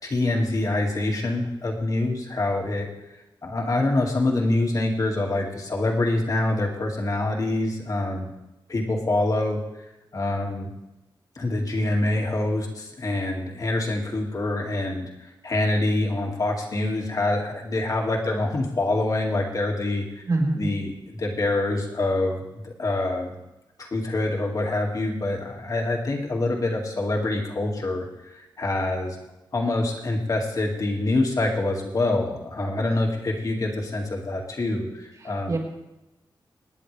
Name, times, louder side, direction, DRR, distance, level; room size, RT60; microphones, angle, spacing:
voice 1, 0.0-2.9 3.4-8.3 8.7-9.6 10.1-10.7 11.4-20.2 20.5-23.4 23.8-29.2 29.5-35.5, left 2 dB, 45° left, 1 dB, 2.1 m, -25 dB
voice 2, 20.2-20.7 35.2-35.6, right 2 dB, 50° right, -2 dB, 4.3 m, -25 dB
27.0 x 10.5 x 3.3 m, 0.97 s
wide cardioid pair, 175°, 8 cm